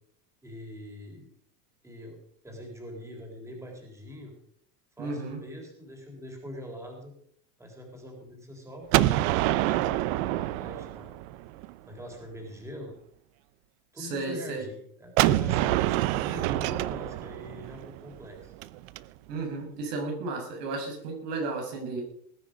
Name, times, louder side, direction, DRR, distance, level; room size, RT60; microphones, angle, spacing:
voice 1, 0.4-1.3 1.8-2.2 2.4-4.3 5.0-7.1 7.6-11.1 11.8-12.9 13.9-18.5, left 1 dB, 5° right, 1 dB, 3.8 m, -43 dB
voice 2, 5.0-5.4 14.0-14.7 19.3-22.1, right 3 dB, 80° right, 2 dB, 6.2 m, -33 dB
Gunshot gunfire, 8.9-11.7 15.2-19.0, right 16 dB, 55° right, 0.7 m, -26 dB
20.0 x 9.6 x 5.2 m, 0.65 s
supercardioid pair, 140°, 47 cm